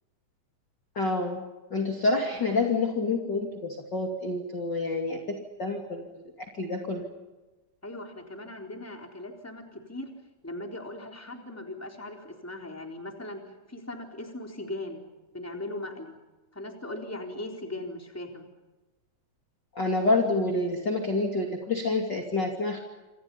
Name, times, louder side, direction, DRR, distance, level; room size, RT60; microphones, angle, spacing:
voice 1, 1.0-1.4 1.7-6.1 6.6-7.0 19.7-22.8, left 3 dB, 35° left, 1 dB, 3.0 m, -28 dB
voice 2, 7.8-10.1 10.4-13.4 13.7-15.1 15.3-16.2 16.5-18.5, left 1 dB, 5° left, 2 dB, 3.7 m, -39 dB
28.0 x 27.5 x 5.6 m, 1.2 s
omnidirectional pair, 3.7 m